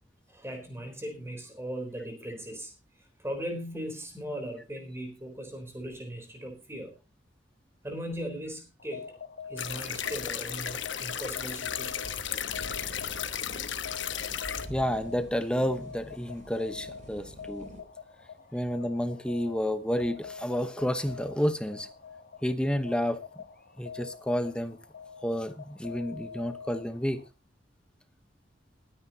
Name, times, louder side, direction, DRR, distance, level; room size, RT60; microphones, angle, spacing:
voice 1, 0.3-2.7 3.2-6.9 7.8-9.1 9.5-12.1, equal, 15° right, 3.7 m, -38 dB
sound 1, 8.8-27.3, left 5 dB, 55° left, 1.1 m, -45 dB
sound 2, 9.6-14.7, left 9 dB, 80° left, 1.2 m, -34 dB
sound 3, 12.0-17.8, equal, 40° right, 3.1 m, -47 dB
voice 2, 14.7-17.7 18.5-21.9 22.4-23.2 23.8-24.8 25.2-27.2, equal, 5° left, 1.1 m, -30 dB
21.5 x 10.0 x 2.9 m
head